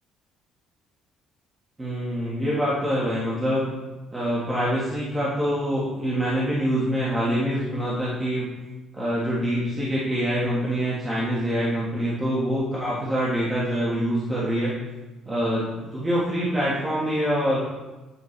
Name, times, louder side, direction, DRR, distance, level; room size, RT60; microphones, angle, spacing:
voice 1, 1.8-3.7 4.1-8.5 8.9-14.8 15.3-17.6, equal, 15° right, -7 dB, 1.6 m, -25 dB
8.4 x 5.8 x 3.3 m, 1.1 s
cardioid pair, 130°, 0 cm